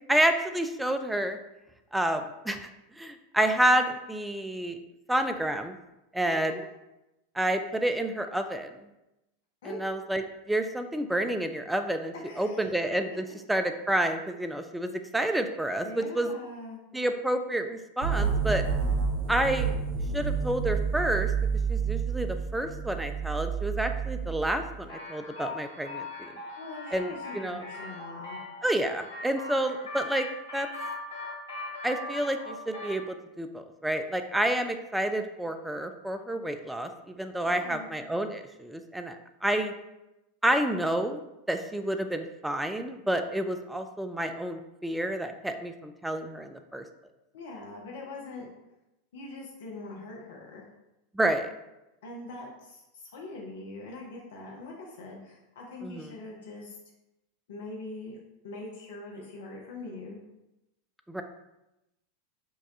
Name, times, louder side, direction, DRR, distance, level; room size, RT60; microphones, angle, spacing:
voice 1, 0.0-1.4 1.9-2.7 3.0-4.8 5.1-5.8 6.1-6.5 7.3-8.7 9.6-16.3 16.9-18.6 19.3-19.7 20.1-21.3 21.7-26.3 26.9-27.6 28.6-30.3 30.5-30.7 31.8-39.2 39.4-39.7 40.4-46.8 51.1-51.5 55.8-56.1 61.1-61.2, right 1 dB, 5° right, 8 dB, 0.3 m, -29 dB
voice 2, 6.2-6.6 9.6-9.8 12.2-12.7 15.8-16.8 26.6-28.4 37.4-37.9 47.3-48.5 49.1-50.6 52.0-56.8 57.5-58.2 58.4-60.2, left 2 dB, 60° left, -2 dB, 0.6 m, -42 dB
sound 1, 18.0-24.8, right 6 dB, 55° right, 0.6 m, -29 dB
sound 2, 24.9-33.0, left 2 dB, 75° left, 1.5 m, -40 dB
5.3 x 2.3 x 2.7 m, 0.93 s
figure-of-eight pair, 85°, 0 cm